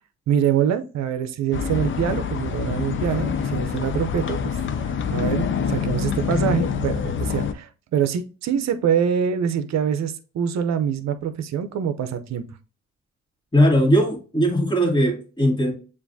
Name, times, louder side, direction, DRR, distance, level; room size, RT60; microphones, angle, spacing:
voice 1, 0.3-4.6 5.1-12.5, right 8 dB, 60° right, 0.6 m, -24 dB
sound 1, 1.5-7.5, left 6 dB, 40° left, 0.5 m, -26 dB
voice 2, 13.5-15.7, equal, 15° left, 1.8 m, -19 dB
7.0 x 2.6 x 2.6 m
cardioid pair, 90°, 30 cm